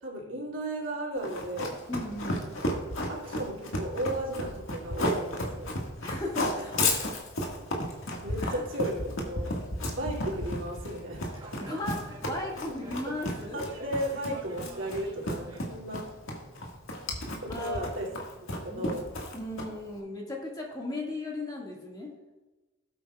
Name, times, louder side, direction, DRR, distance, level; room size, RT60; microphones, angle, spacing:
voice 1, 0.0-1.7 2.4-2.8 3.1-5.7 8.2-9.5 9.9-11.5 13.5-16.0 17.4-18.1 18.6-19.0, right 1 dB, 75° right, -3 dB, 2.6 m, -35 dB
Run, 1.2-19.9, left 1 dB, 90° left, 1.7 m, -33 dB
voice 2, 1.9-2.5 6.0-7.1 8.4-8.6 11.6-13.7 17.5-17.8 18.6-19.0 19.3-22.1, left 1 dB, 20° left, -2 dB, 1.8 m, -36 dB
sound 1, 10.7-15.6, right 2 dB, 25° right, 1.8 m, -49 dB
18.0 x 8.1 x 2.3 m, 1.1 s
head